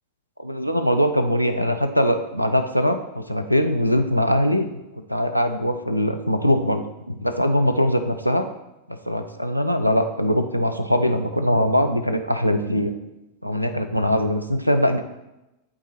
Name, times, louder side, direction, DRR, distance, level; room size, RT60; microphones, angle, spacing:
voice 1, 0.4-4.7 5.1-8.4 8.9-12.9 13.4-15.0, equal, 90° right, 8 dB, 0.5 m, -21 dB
11.0 x 3.8 x 3.2 m, 0.95 s
figure-of-eight pair, 90°, 0 cm